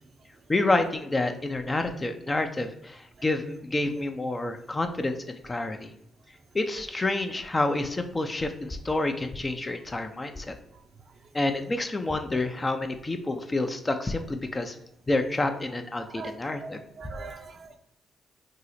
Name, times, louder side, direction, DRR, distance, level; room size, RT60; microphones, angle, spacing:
voice 1, 0.5-5.9 6.5-10.5 11.3-14.8 15.1-16.8, left 2 dB, 30° left, 7 dB, 0.4 m, -28 dB
voice 2, 16.1-17.8, right 4 dB, 50° right, 5 dB, 0.4 m, -42 dB
2.8 x 2.0 x 4.0 m, 0.75 s
hypercardioid pair, 45°, 0 cm